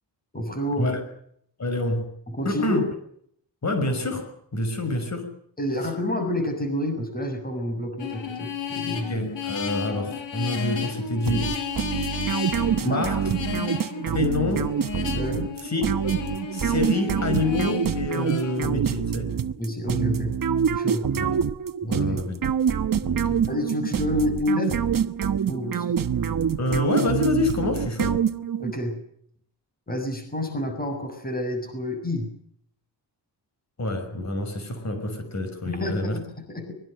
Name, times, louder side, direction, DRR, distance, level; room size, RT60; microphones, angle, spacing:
voice 1, 0.3-0.9 2.3-2.8 5.6-9.1 12.2-12.3 12.8-13.1 15.1-15.5 19.6-20.3 20.7-21.0 21.9-22.2 23.5-24.8 25.5-26.0 28.6-29.0 29.9-32.3 35.7-36.7, left 1 dB, 20° left, 6 dB, 6.7 m, -28 dB
voice 2, 1.6-2.1 2.4-2.9 3.6-5.3 9.1-11.5 12.8-13.2 14.1-14.7 15.6-16.2 16.5-19.3 21.2-21.3 21.8-22.4 23.0-23.4 26.6-28.2 33.8-36.2, left 2 dB, 40° left, 7 dB, 6.0 m, -27 dB
sound 1, 8.0-18.5, left 7 dB, 85° left, 5.2 m, -33 dB
sound 2, 11.3-28.7, right 8 dB, 50° right, 1.2 m, -26 dB
24.5 x 23.0 x 6.6 m, 0.67 s
wide cardioid pair, 165°, 44 cm